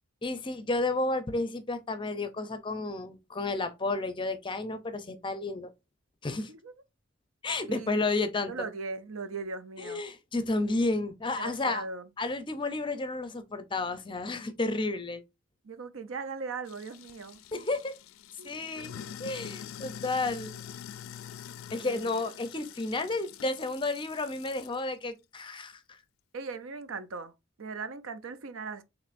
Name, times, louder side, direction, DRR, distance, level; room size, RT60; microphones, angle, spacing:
voice 1, 0.2-5.7 6.2-6.5 7.4-8.5 9.8-11.8 12.2-15.2 17.5-17.9 18.4-18.9 19.2-20.5 21.7-25.8, left 2 dB, 25° left, 0.5 m, -31 dB
voice 2, 8.5-10.0 11.4-12.1 15.6-17.4 18.4-18.5 18.9-19.1 21.8-22.3 26.3-27.3 27.6-28.8, right 4 dB, 85° right, 0.6 m, -39 dB
Sink (filling or washing), 16.7-24.8, left 9 dB, 90° left, 0.4 m, -45 dB
6.6 x 3.0 x 2.5 m
head